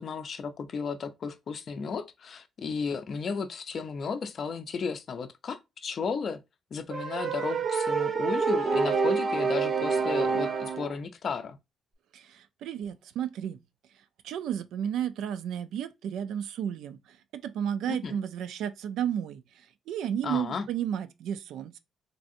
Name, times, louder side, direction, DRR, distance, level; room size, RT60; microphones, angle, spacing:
voice 1, 0.0-6.4 6.7-11.6 17.9-18.2 20.2-20.7, left 5 dB, 45° left, 0.4 m, -34 dB
sound 1, 6.9-10.9, right 4 dB, 45° right, 0.6 m, -27 dB
voice 2, 12.1-13.6 14.2-17.2 17.4-19.4 19.9-21.8, right 9 dB, 80° right, 0.3 m, -32 dB
3.3 x 2.5 x 2.6 m
cardioid pair, 125°, 0 cm